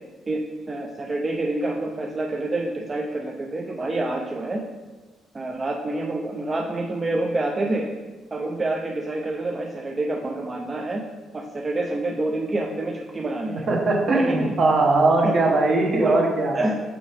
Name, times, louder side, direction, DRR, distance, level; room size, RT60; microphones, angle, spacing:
voice 1, 0.3-4.6 5.3-7.9 8.3-11.1 11.3-13.7 14.1-14.6 15.2-15.4 16.0-16.2 16.5-16.7, right 2 dB, 30° right, 1 dB, 0.5 m, -27 dB
voice 2, 13.7-16.5, right 2 dB, 55° right, 0 dB, 1.3 m, -20 dB
5.8 x 4.9 x 3.4 m, 1.3 s
cardioid pair, 90°, 0 cm